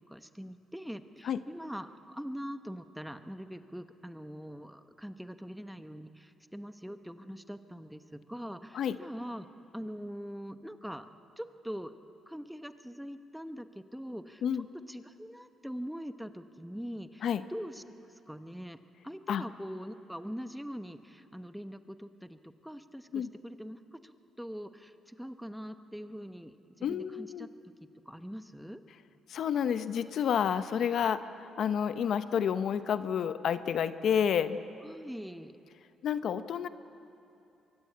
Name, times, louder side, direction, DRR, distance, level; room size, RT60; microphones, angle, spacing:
voice 1, 0.1-9.5 9.7-11.1 11.4-11.9 12.3-14.4 14.9-18.8 19.0-27.5 28.0-28.8 34.8-35.6, equal, ahead, 9 dB, 1.1 m, -43 dB
voice 2, 26.8-27.5 29.3-34.6 36.0-36.7, left 8 dB, 65° left, 12 dB, 0.8 m, -30 dB
23.5 x 23.0 x 8.6 m, 2.8 s
cardioid pair, 90°, 0 cm